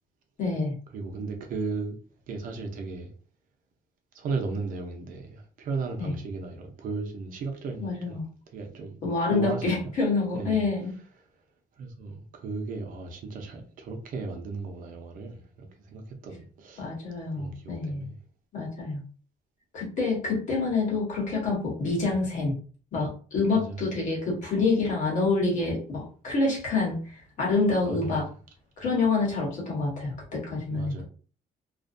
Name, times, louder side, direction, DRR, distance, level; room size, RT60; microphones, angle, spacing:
voice 1, 0.4-0.7 6.0-6.1 7.8-8.2 9.0-10.9 16.8-18.1 18.5-19.0 19.7-22.6 22.9-28.3 28.8-30.9, left 3 dB, 55° left, 1.2 m, -27 dB
voice 2, 0.9-2.0 2.3-3.1 4.1-8.2 8.5-9.0 9.3-9.9 10.3-10.7 11.8-16.9 17.3-18.2 23.5-23.8 27.8-28.3 30.7-31.0, right 4 dB, 60° right, 0.6 m, -35 dB
2.5 x 2.1 x 2.5 m
cardioid pair, 170°, 16 cm